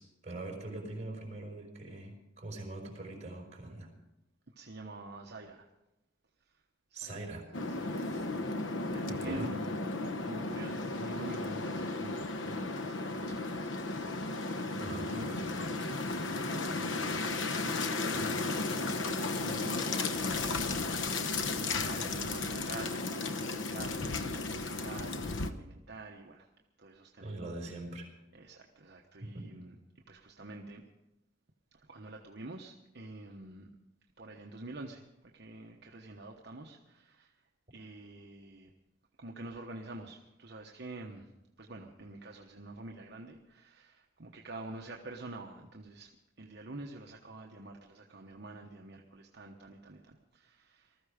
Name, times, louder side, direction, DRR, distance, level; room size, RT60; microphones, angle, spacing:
voice 1, 0.0-3.9 6.9-7.5 9.1-9.5 14.8-15.1 18.1-18.3 27.2-28.1 29.2-29.5, right 2 dB, 35° right, 0 dB, 5.2 m, -42 dB
voice 2, 4.5-5.7 6.4-6.6 6.9-7.4 7.7-9.8 10.2-15.9 16.3-17.0 17.6-26.5 26.8-27.5 28.3-30.8 31.7-33.7 34.2-38.7 39.2-41.3 41.6-51.0, right 2 dB, 60° right, 1 dB, 1.1 m, -48 dB
sound 1, 7.5-25.5, left 3 dB, 85° left, 0.9 m, -34 dB
20.0 x 14.0 x 5.1 m, 0.95 s
head